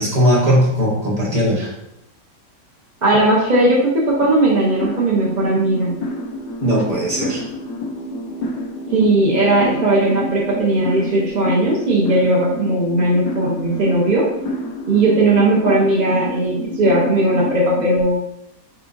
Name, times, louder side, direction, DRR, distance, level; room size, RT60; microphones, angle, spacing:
voice 1, 0.0-1.7 6.6-7.4, equal, 25° right, -6 dB, 1.3 m, -18 dB
voice 2, 3.0-5.9 8.9-14.3 14.9-18.2, right 2 dB, 40° right, -6 dB, 0.6 m, -17 dB
sound 1, 4.2-18.0, equal, 75° left, 1.2 m, -29 dB
5.6 x 3.7 x 2.5 m, 0.83 s
omnidirectional pair, 1.8 m